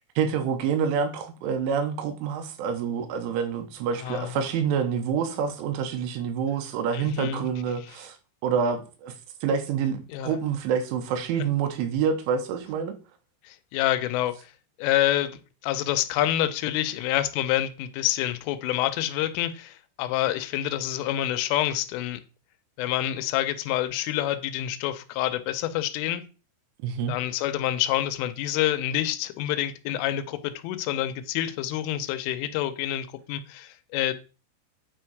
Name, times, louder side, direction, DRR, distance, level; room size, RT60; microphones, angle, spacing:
voice 1, 0.2-8.2 8.4-9.1 9.4-13.0 26.8-27.1, right 7 dB, 90° right, 3.3 m, -27 dB
voice 2, 4.0-4.3 6.9-7.5 10.1-10.3 13.4-14.5 14.8-22.2 22.8-26.2 27.1-34.1, left 13 dB, 90° left, 3.2 m, -27 dB
8.9 x 3.6 x 4.5 m
omnidirectional pair, 5.6 m